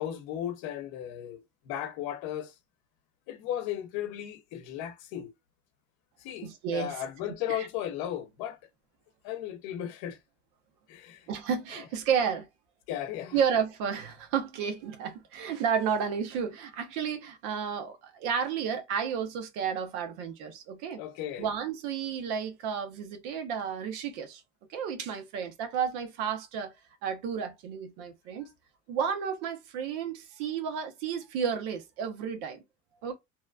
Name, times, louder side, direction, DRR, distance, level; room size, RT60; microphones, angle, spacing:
voice 1, 0.0-1.4 1.7-2.5 3.3-5.3 6.2-6.5 6.7-8.6 9.2-10.2 10.9-11.3 12.9-13.4 21.0-21.5, left 11 dB, 75° left, 0.8 m, -35 dB
voice 2, 6.4-7.0 7.5-7.7 11.3-12.5 13.3-21.0 21.4-24.4 24.7-26.7 27.0-28.5 28.9-32.6 33.0-33.2, right 7 dB, 85° right, 0.9 m, -32 dB
2.9 x 2.2 x 2.3 m
cardioid pair, 130°, 38 cm